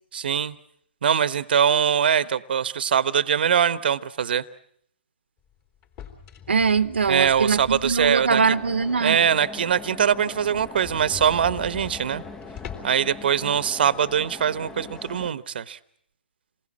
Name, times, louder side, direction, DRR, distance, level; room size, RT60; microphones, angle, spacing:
voice 1, 0.1-0.5 1.0-4.4 7.1-8.4 9.0-12.2 12.8-15.8, right 8 dB, 60° right, 1.0 m, -22 dB
sound 1, 5.8-8.4 8.8-8.9 9.3-9.4 9.7-9.8 10.0-10.1 10.5-13.1, left 8 dB, 25° left, 3.7 m, -42 dB
voice 2, 6.5-9.2, right 5 dB, 90° right, 1.0 m, -22 dB
sound 2, 8.3-15.3, left 3 dB, 10° left, 0.9 m, -41 dB
27.5 x 20.0 x 7.4 m
hypercardioid pair, 150°, 6 cm